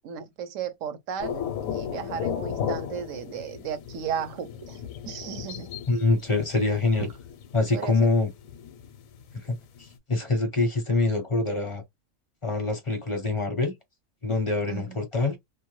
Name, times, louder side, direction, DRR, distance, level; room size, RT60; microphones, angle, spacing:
voice 1, 0.0-4.8 5.1-5.7 7.7-8.1 14.7-15.0, right 8 dB, 70° right, 0.9 m, -35 dB
sound 1, 1.2-10.0, left 8 dB, 70° left, 1.0 m, -36 dB
voice 2, 5.9-7.1 7.5-8.3 9.4-9.6 10.1-11.8 12.4-13.7 14.2-15.4, left 3 dB, 30° left, 0.6 m, -24 dB
2.5 x 2.2 x 3.0 m
omnidirectional pair, 1.5 m